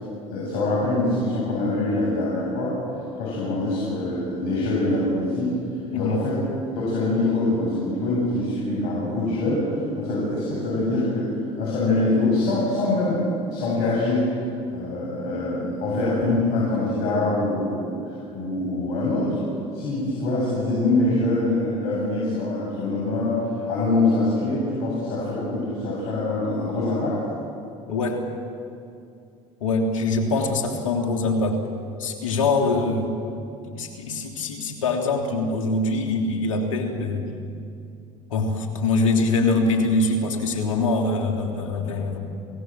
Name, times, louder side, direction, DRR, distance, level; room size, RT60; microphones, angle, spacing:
voice 1, 0.3-2.8 3.2-5.5 5.9-6.4 6.7-14.3 14.7-19.4 19.7-23.4 23.7-27.2, left 2 dB, 70° left, -6 dB, 7.9 m, -24 dB
voice 2, 5.9-6.2 27.9-28.2 29.6-31.6 32.0-33.1 33.6-37.3 38.3-42.2, left 3 dB, 85° left, 2 dB, 3.2 m, -23 dB
30.0 x 17.0 x 7.7 m, 2.6 s
hypercardioid pair, 80°, 17 cm